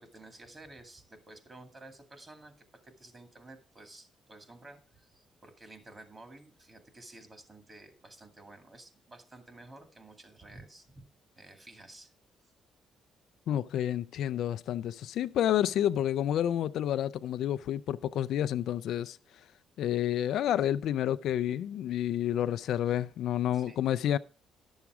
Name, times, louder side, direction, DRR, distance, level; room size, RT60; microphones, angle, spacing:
voice 1, 0.0-11.1 11.4-12.1 22.8-23.0 23.5-23.8, right 2 dB, 30° right, 2.2 m, -52 dB
voice 2, 13.5-19.2 19.8-24.2, left 11 dB, 75° left, 0.4 m, -29 dB
11.5 x 7.2 x 4.8 m
cardioid pair, 90°, 0 cm